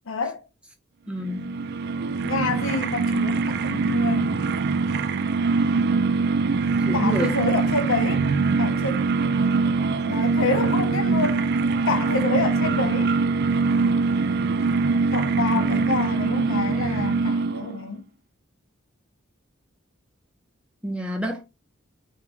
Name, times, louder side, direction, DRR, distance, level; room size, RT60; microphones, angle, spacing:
voice 1, 0.1-0.4 2.2-4.5 6.9-8.3 8.6-9.0 10.1-11.4 11.9-13.1 15.1-18.0, left 3 dB, 65° left, 0.7 m, -27 dB
voice 2, 1.1-1.5 6.9-7.4 15.5-15.8 20.8-21.4, right 1 dB, 5° right, 0.7 m, -28 dB
sound 1, 1.2-17.9, right 4 dB, 50° right, 0.4 m, -23 dB
3.6 x 2.9 x 3.4 m
head